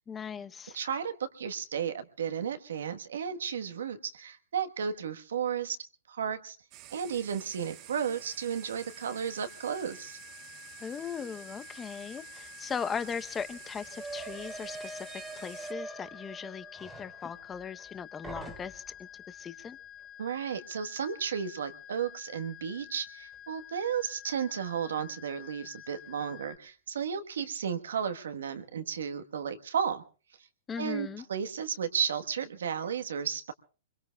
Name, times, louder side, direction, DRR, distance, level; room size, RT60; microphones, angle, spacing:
voice 1, 0.1-0.8 10.8-15.1 15.4-19.8 30.7-31.3, left 6 dB, 20° left, 13 dB, 0.8 m, -38 dB
voice 2, 0.7-5.8 6.1-6.6 6.9-10.2 20.2-30.0 30.8-33.5, right 7 dB, 80° right, 8 dB, 1.3 m, -33 dB
sound 1, 6.7-15.7, right 15 dB, 40° right, 0.8 m, -50 dB
sound 2, 7.5-26.6, left 11 dB, 35° left, 4.4 m, -50 dB
sound 3, 12.4-12.5 12.7-17.9 18.2-19.0, right 3 dB, 10° right, 2.4 m, -44 dB
25.0 x 22.5 x 2.3 m, 0.35 s
hypercardioid pair, 125°, 0 cm